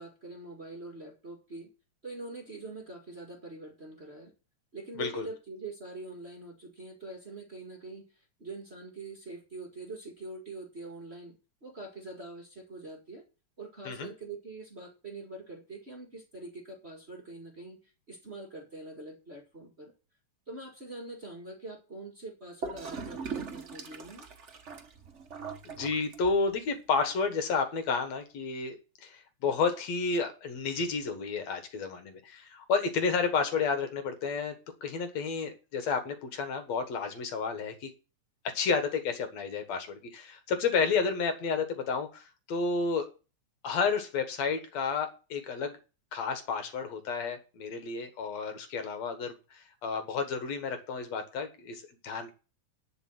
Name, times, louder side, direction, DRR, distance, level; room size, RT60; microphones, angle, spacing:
voice 1, 0.0-1.7 2.0-4.3 4.7-11.4 11.6-13.2 13.6-17.8 18.1-19.9 20.5-24.3, right 2 dB, 25° right, 0 dB, 1.8 m, -44 dB
Gurgling / Toilet flush, 22.6-26.6, right 5 dB, 70° right, 0.6 m, -40 dB
voice 2, 25.6-28.8 29.0-37.9 38.5-43.1 43.6-45.8 46.1-52.3, left 5 dB, 65° left, 7 dB, 2.7 m, -31 dB
11.0 x 5.2 x 7.8 m, 0.32 s
omnidirectional pair, 3.3 m